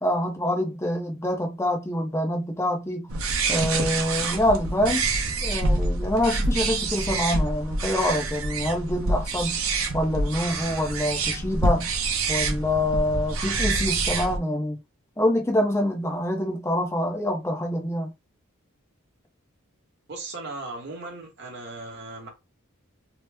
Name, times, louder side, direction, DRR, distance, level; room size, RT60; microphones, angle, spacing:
voice 1, 0.0-3.1 3.5-5.1 5.4-9.6 9.9-11.9 12.3-14.8 15.2-18.1, left 1 dB, 15° left, 0.6 m, -26 dB
sound 1, 3.1-14.4, right 3 dB, 75° right, 0.7 m, -26 dB
voice 2, 20.1-22.3, right 2 dB, 50° right, 1.1 m, -37 dB
2.9 x 2.1 x 3.3 m
head